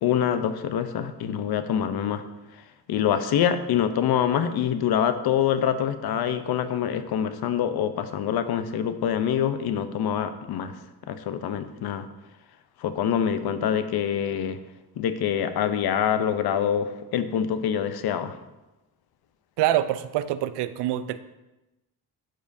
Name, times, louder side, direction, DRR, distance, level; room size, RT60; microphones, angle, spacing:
voice 1, 0.0-2.2 2.9-10.7 11.1-12.1 12.8-14.6 15.0-18.4, left 9 dB, 65° left, 10 dB, 0.7 m, -25 dB
voice 2, 19.6-21.2, right 13 dB, 85° right, 13 dB, 0.5 m, -25 dB
11.5 x 5.2 x 2.7 m, 1.0 s
cardioid pair, 95°, 40 cm